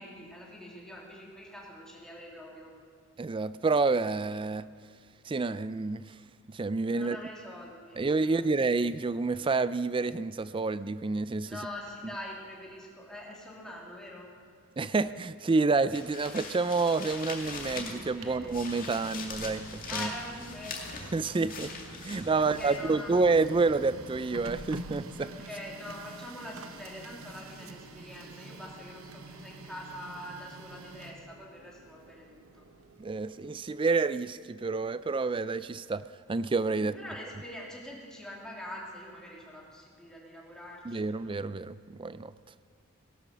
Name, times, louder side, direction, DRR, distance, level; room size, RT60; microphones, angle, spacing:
voice 1, 0.0-2.7 6.9-8.5 11.4-14.3 18.1-18.5 19.9-20.7 22.3-23.1 25.2-32.6 36.8-41.1, left 1 dB, 5° left, -4 dB, 3.2 m, -44 dB
voice 2, 3.2-4.7 5.2-6.2 6.5-7.2 7.9-11.5 14.8-20.1 21.1-21.7 22.0-25.3 33.0-36.9 40.8-42.3, right 3 dB, 25° right, 15 dB, 0.4 m, -29 dB
sound 1, 15.9-18.1 18.5-22.8, left 4 dB, 40° left, 2.2 m, -41 dB
sound 2, 17.6-24.3, right 1 dB, 90° right, 1.7 m, -50 dB
Printer, 17.9-33.7, right 3 dB, 70° right, 1.1 m, -47 dB
18.0 x 12.0 x 6.2 m, 2.2 s
head